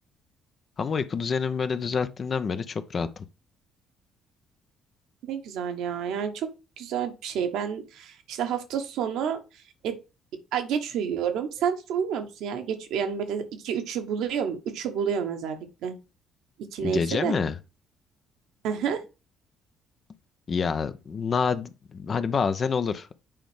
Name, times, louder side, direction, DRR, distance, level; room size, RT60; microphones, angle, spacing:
voice 1, 0.8-3.2 16.8-17.6 20.5-23.2, left 5 dB, 40° left, 0.8 m, -27 dB
voice 2, 5.2-6.5 6.8-9.4 9.8-10.0 10.5-16.0 16.7-17.3 18.6-19.0, right 7 dB, 60° right, 1.2 m, -29 dB
8.9 x 5.0 x 3.4 m
figure-of-eight pair, 45°, 0 cm